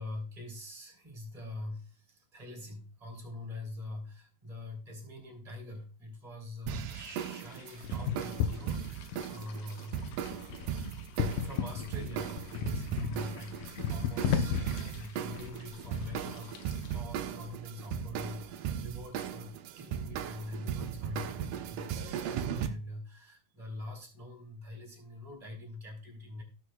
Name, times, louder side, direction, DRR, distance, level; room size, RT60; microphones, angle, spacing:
voice 1, 0.0-10.4 11.3-16.6 16.8-26.4, left 1 dB, 10° right, 0 dB, 3.2 m, -44 dB
sound 1, 6.7-22.7, right 9 dB, 75° right, 2.2 m, -37 dB
sound 2, 6.9-17.0, left 8 dB, 80° left, 2.5 m, -36 dB
18.0 x 6.4 x 2.3 m, 0.36 s
omnidirectional pair, 3.9 m